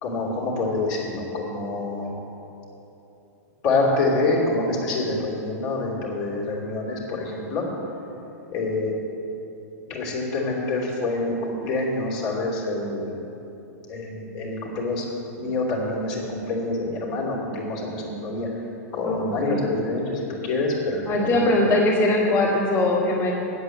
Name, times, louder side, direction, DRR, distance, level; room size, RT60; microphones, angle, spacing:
voice 1, 0.0-2.1 3.6-7.6 8.5-8.9 9.9-13.1 13.9-15.0 15.4-18.6 18.9-21.7, left 2 dB, 45° left, -3 dB, 2.8 m, -26 dB
voice 2, 19.0-19.6 21.1-23.3, left 2 dB, 25° left, -8 dB, 2.3 m, -21 dB
8.2 x 8.1 x 7.7 m, 3.0 s
hypercardioid pair, 125°, 9 cm